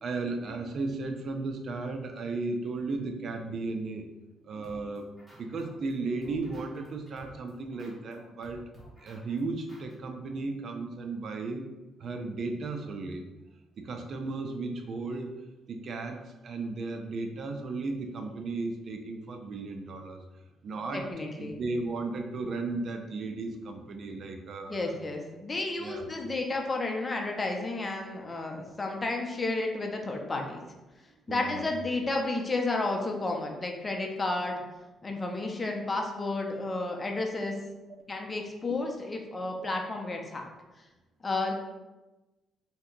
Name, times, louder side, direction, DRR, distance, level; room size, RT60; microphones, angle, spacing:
voice 1, 0.0-4.1 4.4-8.6 9.0-11.7 12.0-13.3 13.8-15.4 15.7-20.2 20.6-21.1 21.4-25.0 25.8-26.3 31.3-31.7, right 3 dB, 55° right, 4 dB, 0.4 m, -35 dB
sound 1, 4.6-5.9 6.2-9.9, equal, 5° right, 1.0 m, -53 dB
voice 2, 20.9-21.6 24.7-30.6 31.3-34.6 35.0-37.5 38.1-40.5 41.2-41.5, left 2 dB, 25° left, 1 dB, 0.6 m, -32 dB
2.7 x 2.2 x 3.8 m, 1.1 s
cardioid pair, 90°, 0 cm